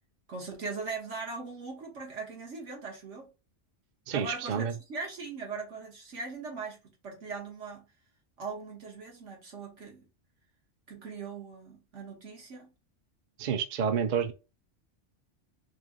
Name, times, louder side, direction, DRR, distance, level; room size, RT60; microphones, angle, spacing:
voice 1, 0.3-3.3 4.1-7.9 8.4-10.0 10.9-12.7, right 4 dB, 75° right, 1.7 m, -40 dB
voice 2, 4.1-4.7 13.4-14.3, right 7 dB, 50° right, 0.6 m, -29 dB
3.4 x 3.1 x 3.6 m
omnidirectional pair, 1.3 m